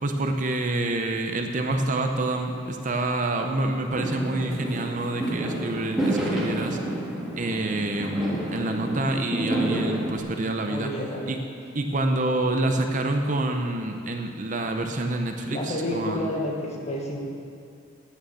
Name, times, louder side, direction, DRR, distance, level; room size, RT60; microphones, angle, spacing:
voice 1, 0.0-6.8 7.4-10.9 11.3-11.4 11.7-16.3, right 2 dB, 40° right, 4 dB, 0.7 m, -27 dB
Fireworks, 3.9-10.2, right 1 dB, ahead, 1.8 m, -29 dB
voice 2, 10.7-11.2 15.5-17.2, left 1 dB, 35° left, -1 dB, 1.6 m, -30 dB
9.3 x 9.1 x 7.1 m, 2.4 s
head